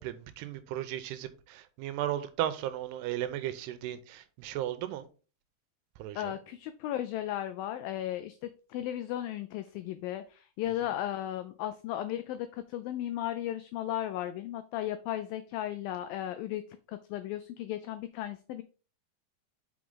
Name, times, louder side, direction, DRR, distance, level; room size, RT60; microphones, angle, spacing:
voice 1, 0.0-5.1 6.0-6.4, right 12 dB, 90° right, 2.8 m, -35 dB
voice 2, 6.2-16.6 16.9-18.6, left 12 dB, 90° left, 2.0 m, -35 dB
6.2 x 5.7 x 3.7 m
omnidirectional pair, 4.7 m